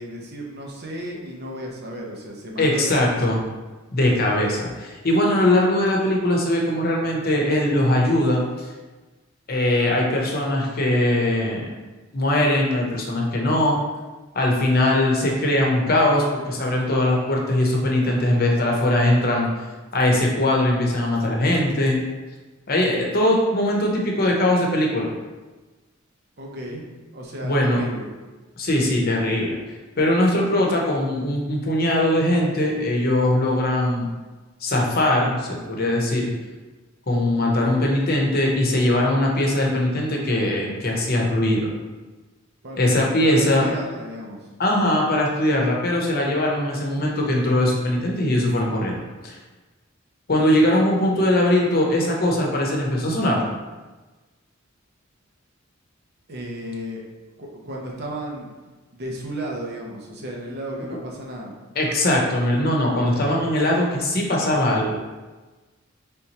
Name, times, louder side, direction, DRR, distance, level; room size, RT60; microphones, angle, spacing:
voice 1, 0.0-3.2 26.4-26.8 27.1-28.1 42.6-43.0 43.2-44.6 56.3-57.0 57.4-58.5 58.9-61.5, right 1 dB, 55° right, -1 dB, 0.8 m, -34 dB
voice 2, 2.6-3.4 3.9-8.7 9.5-11.7 12.1-13.8 14.3-19.5 19.9-22.0 22.7-25.1 27.4-27.8 28.6-29.6 30.0-34.1 34.6-36.3 37.1-41.7 42.8-43.6 44.6-49.4 50.3-53.4 61.8-64.9, left 1 dB, 50° left, -1 dB, 0.8 m, -21 dB
4.3 x 3.5 x 2.9 m, 1.2 s
head